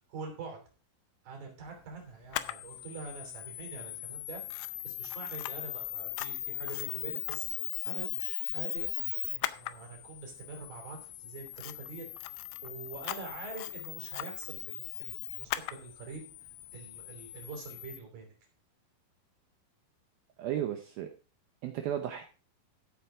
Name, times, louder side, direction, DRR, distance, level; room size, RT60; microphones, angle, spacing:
voice 1, 0.1-0.6 1.2-8.9 9.3-12.1 12.6-16.2 16.7-18.3, right 4 dB, 50° right, 2 dB, 4.5 m, -45 dB
Camera, 2.3-18.0, left 17 dB, 80° left, 2.7 m, -39 dB
voice 2, 20.4-21.1 21.6-22.2, right 10 dB, 85° right, 6 dB, 2.1 m, -34 dB
14.0 x 8.0 x 3.7 m, 0.37 s
omnidirectional pair, 5.5 m